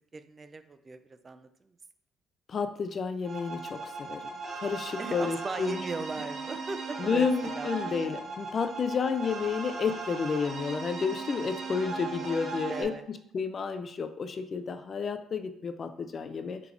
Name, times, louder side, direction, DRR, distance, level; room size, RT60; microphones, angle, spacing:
voice 1, 0.1-1.7 5.0-7.7 11.4-11.5 12.7-13.0, right 3 dB, 30° right, 10 dB, 0.4 m, -38 dB
voice 2, 2.5-4.3 4.5-5.8 7.0-16.6, left 5 dB, 45° left, 9 dB, 0.4 m, -31 dB
sound 1, 3.2-12.8, right 3 dB, 50° right, 0.9 m, -38 dB
4.9 x 3.3 x 2.5 m, 0.74 s
supercardioid pair, 80°, 0 cm